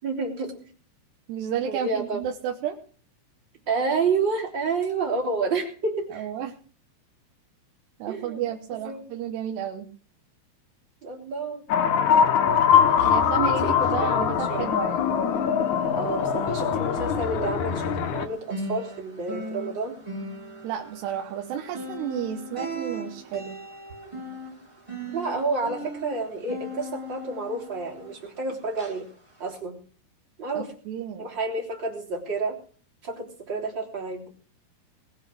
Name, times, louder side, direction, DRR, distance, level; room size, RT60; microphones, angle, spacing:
voice 1, 0.0-0.5 1.7-2.2 3.7-6.3 8.1-8.4 8.9-9.0 11.0-11.6 13.4-14.7 15.9-20.0 25.1-29.1 29.4-29.8 30.4-30.7 31.2-32.6 33.0-34.3, right 3 dB, 30° right, 0 dB, 3.5 m, -29 dB
voice 2, 1.3-2.8 6.1-6.5 8.0-9.9 13.0-15.1 20.6-23.6 30.6-31.3, right 9 dB, 80° right, 3 dB, 3.2 m, -32 dB
sound 1, 11.7-18.3, left 8 dB, 70° left, 1.8 m, -22 dB
sound 2, 12.9-15.0 15.3-28.4 28.8-29.0 29.5-29.6, equal, 10° right, 3.2 m, -38 dB
20.0 x 8.3 x 6.2 m, 0.43 s
omnidirectional pair, 4.9 m